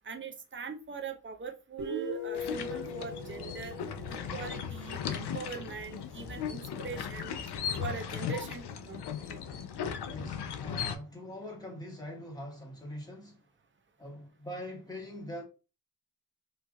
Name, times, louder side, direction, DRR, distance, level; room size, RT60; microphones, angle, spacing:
voice 1, 0.0-3.8 4.1-7.3 7.8-9.0 9.3-9.4, right 5 dB, 30° right, 0.6 m, -42 dB
Guitar, 1.8-5.3, left 1 dB, 75° right, 1.4 m, -39 dB
sound 1, 2.3-11.0, left 7 dB, 80° left, 0.5 m, -37 dB
voice 2, 10.1-13.4 14.0-15.4, left 1 dB, 10° left, 1.4 m, -43 dB
3.1 x 2.6 x 2.3 m
cardioid pair, 70°, 39 cm